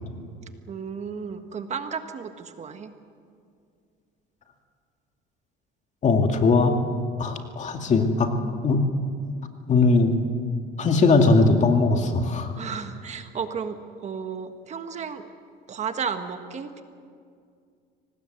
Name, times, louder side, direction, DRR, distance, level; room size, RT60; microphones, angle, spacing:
voice 1, 0.7-2.9 12.6-15.3 15.7-16.8, right 6 dB, 40° right, 7 dB, 1.5 m, -33 dB
voice 2, 6.0-6.8 7.2-8.3 8.6-8.8 9.7-10.2 10.8-12.5, left 3 dB, 40° left, 4 dB, 2.3 m, -20 dB
24.5 x 19.0 x 8.0 m, 2.3 s
cardioid pair, 120°, 19 cm